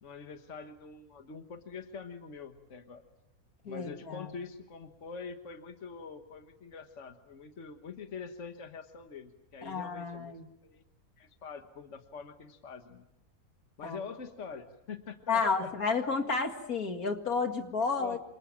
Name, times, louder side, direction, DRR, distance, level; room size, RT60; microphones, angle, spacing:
voice 1, 0.0-3.0 3.6-10.4 10.6-10.8 11.2-13.0 13.8-15.7 18.0-18.2, left 5 dB, 55° left, 6 dB, 1.7 m, -45 dB
voice 2, 3.7-4.3 9.6-10.5 13.8-14.0 15.3-18.2, left 4 dB, 80° left, 5 dB, 2.5 m, -31 dB
27.5 x 27.0 x 7.5 m, 0.86 s
omnidirectional pair, 1.5 m